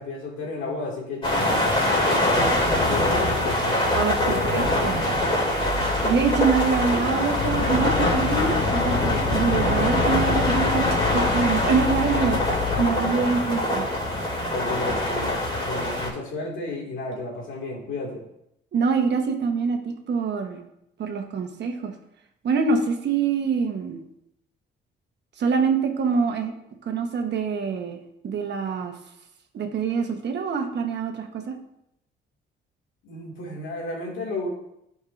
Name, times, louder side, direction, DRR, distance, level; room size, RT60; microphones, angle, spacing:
voice 1, 0.0-3.8 4.2-4.9 14.5-18.3 33.0-34.5, left 2 dB, 75° left, -1 dB, 2.3 m, -33 dB
sound 1, 1.2-16.1, left 1 dB, 25° left, 2.9 m, -23 dB
voice 2, 3.9-5.0 6.0-10.9 11.1-12.4 12.8-13.9 18.7-20.7 21.0-21.9 22.4-24.0 25.4-26.5 26.9-28.0 28.2-29.0 29.5-31.5, right 5 dB, 60° right, 4 dB, 1.2 m, -25 dB
sound 2, 7.3-12.9, left 9 dB, 50° left, 0.6 m, -29 dB
11.5 x 5.4 x 2.6 m, 0.79 s
cardioid pair, 90°, 20 cm